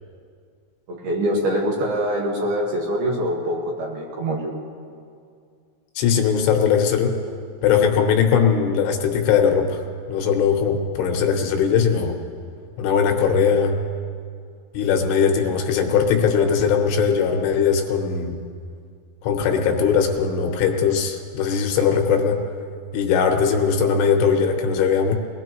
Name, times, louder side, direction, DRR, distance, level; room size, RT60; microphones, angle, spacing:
voice 1, 0.9-4.5, equal, 60° right, -2 dB, 3.0 m, -24 dB
voice 2, 6.0-7.1 7.6-9.8 10.1-12.1 12.8-13.8 14.7-18.4 19.2-22.4 22.9-25.1, left 6 dB, 80° left, 3 dB, 3.5 m, -20 dB
22.5 x 20.0 x 3.0 m, 2.3 s
omnidirectional pair, 5.8 m